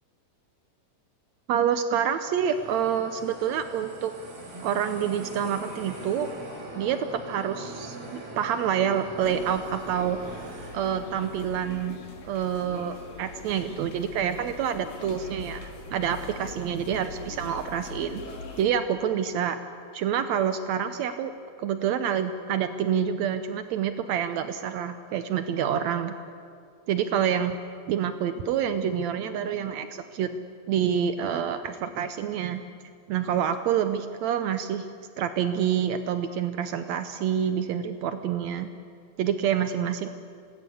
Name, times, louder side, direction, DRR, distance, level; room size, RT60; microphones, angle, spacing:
voice 1, 1.5-4.1 4.6-6.3 6.8-10.5 10.7-12.0 12.2-18.3 18.6-19.6 19.9-26.1 26.9-27.6 27.9-30.4 30.7-32.6 33.1-34.9 35.2-38.7 39.2-40.1, right 8 dB, 85° right, 9 dB, 1.5 m, -27 dB
sound 1, 2.0-11.8, right 1 dB, 45° right, 4.6 m, -42 dB
sound 2, 9.2-18.7, left 3 dB, 65° left, 4.1 m, -42 dB
26.0 x 19.5 x 8.5 m, 2.3 s
omnidirectional pair, 4.2 m